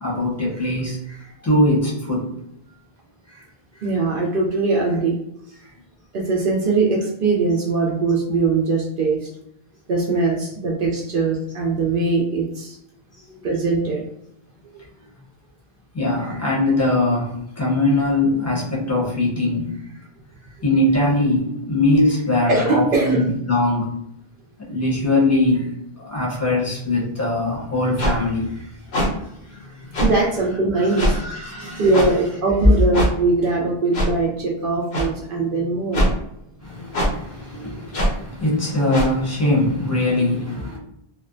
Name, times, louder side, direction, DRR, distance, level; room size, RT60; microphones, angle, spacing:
voice 1, 0.0-2.3 3.3-3.4 13.3-13.5 14.7-14.8 15.9-19.8 20.6-23.9 24.7-28.7 29.1-29.2 29.5-30.0 30.7-31.9 36.6-40.8, left 2 dB, 20° left, -4 dB, 0.6 m, -22 dB
voice 2, 3.8-5.2 6.1-9.3 9.9-12.8 13.4-14.0 22.5-23.2 30.0-31.2 31.8-36.1, right 3 dB, 65° right, -2 dB, 0.7 m, -21 dB
sound 1, 28.0-28.1 28.9-29.1 29.9-30.1 31.0-31.2 31.9-32.1 32.9-33.1 33.9-34.1 34.9-35.1 35.9-36.1 36.9-37.1 37.9-38.1 38.9-39.1, equal, 90° left, 1.0 m, -20 dB
2.5 x 2.1 x 2.5 m, 0.79 s
omnidirectional pair, 1.0 m